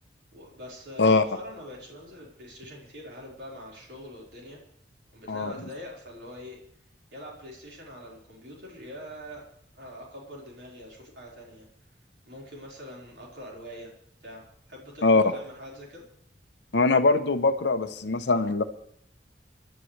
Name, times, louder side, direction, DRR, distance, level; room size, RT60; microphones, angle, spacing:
voice 1, 0.3-4.6 5.1-6.6 7.1-9.4 9.7-11.7 12.3-13.9 14.2-14.4 14.7-16.0, left 1 dB, 70° right, -3 dB, 4.6 m, -43 dB
voice 2, 16.7-18.6, left 3 dB, 80° left, 7 dB, 0.9 m, -22 dB
29.0 x 11.5 x 3.3 m, 0.66 s
head